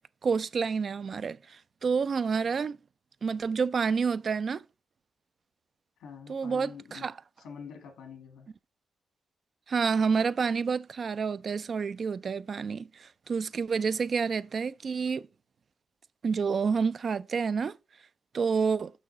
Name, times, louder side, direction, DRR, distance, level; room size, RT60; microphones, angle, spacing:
voice 1, 0.2-2.8 3.2-4.6 6.3-7.1 9.7-15.2 16.2-17.8 18.3-18.9, right 5 dB, 55° right, 0.3 m, -29 dB
voice 2, 6.0-7.1 7.4-8.5, left 6 dB, 85° left, 1.5 m, -46 dB
6.2 x 6.1 x 3.9 m
supercardioid pair, 55°, 0 cm